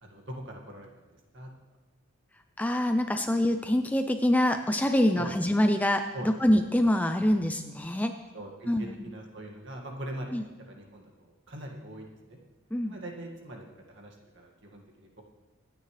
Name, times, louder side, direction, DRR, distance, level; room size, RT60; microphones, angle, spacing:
voice 1, 0.0-1.0 1.3-1.5 5.2-5.3 6.1-6.3 8.3-10.4 10.7-12.4 12.8-15.2, right 1 dB, 55° right, 1 dB, 2.0 m, -42 dB
voice 2, 2.6-8.1 8.7-9.1 10.3-10.4 12.7-13.0, left 1 dB, 5° left, 7 dB, 0.4 m, -25 dB
25.0 x 9.3 x 3.3 m, 1.2 s
head